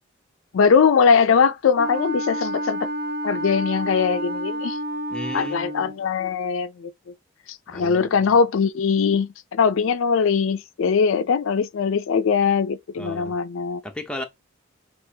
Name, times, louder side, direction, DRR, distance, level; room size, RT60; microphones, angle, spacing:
voice 1, 0.5-2.9 3.2-4.8 5.3-6.9 7.7-13.8, left 6 dB, 75° left, 0.4 m, -21 dB
Wind instrument woodwind instrument, 1.8-6.0, equal, 45° right, 1.0 m, -29 dB
voice 2, 5.1-5.9 7.7-8.1 13.0-13.3 13.8-14.2, left 1 dB, 5° left, 0.6 m, -34 dB
6.5 x 2.4 x 2.7 m
head